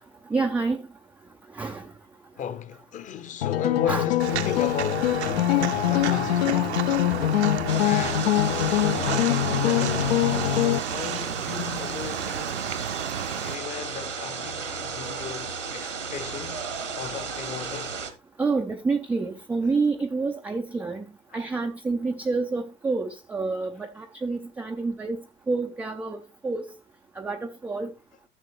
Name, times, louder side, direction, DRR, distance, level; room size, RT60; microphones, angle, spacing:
voice 1, 0.3-0.8 1.6-1.8 3.9-4.1 6.4-6.5 18.4-21.0 21.3-25.2 25.5-26.7 27.2-27.9, right 4 dB, 5° right, 0.4 m, -28 dB
voice 2, 2.4-6.8 7.8-8.3 8.6-10.2 10.9-12.7 13.4-16.6 17.0-18.0 21.3-21.4, left 9 dB, 20° left, 0.8 m, -35 dB
sound 1, 3.4-10.8, left 13 dB, 55° left, 0.6 m, -23 dB
Walk footsteps, 4.2-13.5, right 10 dB, 65° right, 0.8 m, -32 dB
sound 2, 7.7-18.1, right 5 dB, 80° right, 1.5 m, -34 dB
13.5 x 6.6 x 3.1 m
figure-of-eight pair, 90°, 36 cm